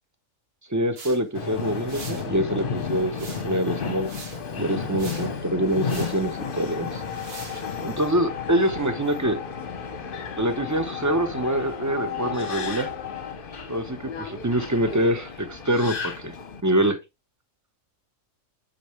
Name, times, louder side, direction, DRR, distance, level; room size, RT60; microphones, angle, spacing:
voice 1, 0.7-3.2 3.4-4.1 4.5-7.0 7.5-9.4 10.4-12.9 13.7-16.3 16.6-17.0, right 1 dB, 15° right, 0.8 m, -25 dB
sound 1, 1.0-1.2 1.9-2.3 3.1-3.6 4.0-4.4 5.0-5.3 5.9-6.2 7.1-7.7, right 4 dB, 50° right, 1.5 m, -41 dB
Subway metro underground, 1.3-16.6, left 5 dB, 45° left, 1.1 m, -33 dB
sound 2, 5.3-13.4, left 14 dB, 70° left, 0.9 m, -38 dB
9.1 x 4.2 x 3.1 m
omnidirectional pair, 1.4 m